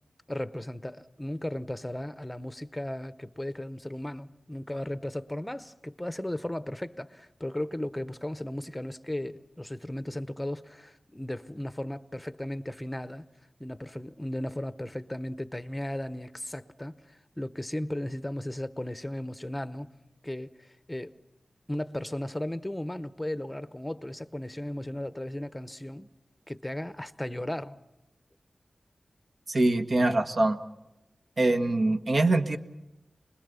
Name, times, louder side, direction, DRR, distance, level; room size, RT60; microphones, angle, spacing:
voice 1, 0.3-13.3 13.6-19.9 20.2-21.1 21.7-26.1 26.5-27.8, left 1 dB, 10° left, 13 dB, 0.8 m, -36 dB
voice 2, 29.5-30.6 31.4-32.6, right 2 dB, 55° right, 7 dB, 1.3 m, -24 dB
26.5 x 21.0 x 6.9 m, 0.95 s
wide cardioid pair, 95°, 0 cm